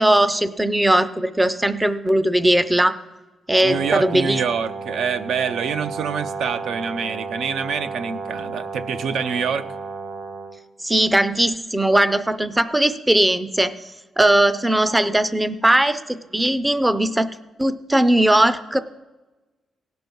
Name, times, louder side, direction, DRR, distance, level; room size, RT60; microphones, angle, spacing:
voice 1, 0.0-3.0 3.5-4.4 10.8-13.7 14.2-17.3 17.6-18.8, right 1 dB, 10° right, 14 dB, 0.4 m, -19 dB
Brass instrument, 3.6-10.6, right 4 dB, 40° right, 1.1 m, -32 dB
voice 2, 3.6-9.7, right 6 dB, 80° right, 11 dB, 0.5 m, -26 dB
17.5 x 6.0 x 5.3 m, 1.1 s
cardioid pair, 140°, 0 cm